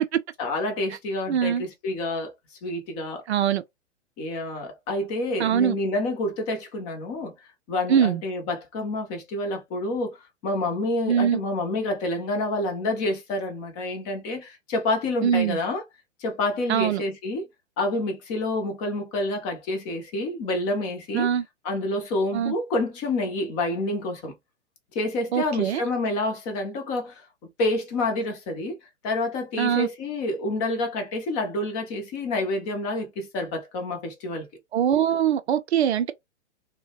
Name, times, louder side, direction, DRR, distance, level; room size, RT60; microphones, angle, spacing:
voice 1, 0.4-3.2 4.2-7.3 7.7-15.8 16.2-17.5 17.8-21.3 21.6-24.3 24.9-27.3 27.6-28.8 29.0-34.5, left 2 dB, 25° left, 0.6 m, -28 dB
voice 2, 1.3-1.6 3.3-3.6 5.4-5.8 7.9-8.2 11.1-11.4 15.2-15.6 16.7-17.0 21.1-21.4 22.3-22.5 25.3-25.8 29.6-29.9 34.7-36.1, right 9 dB, 60° right, 0.5 m, -22 dB
2.7 x 2.1 x 2.8 m
figure-of-eight pair, 115°, 37 cm